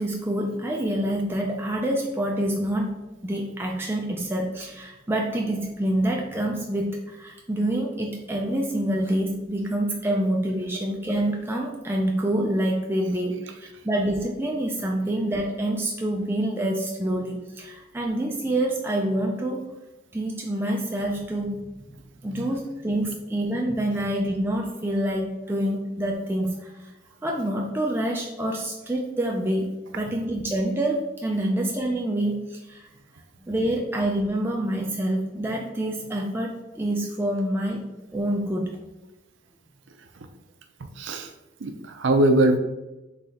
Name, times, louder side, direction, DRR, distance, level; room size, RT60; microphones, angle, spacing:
voice 1, 0.0-19.6 20.1-22.0 22.2-26.9 27.2-32.9 33.4-37.8 38.1-38.7, right 1 dB, 10° right, -1 dB, 0.4 m, -27 dB
voice 2, 41.0-41.3 41.6-42.6, right 1 dB, 70° right, 7 dB, 0.5 m, -21 dB
3.9 x 3.2 x 4.1 m, 1.0 s
head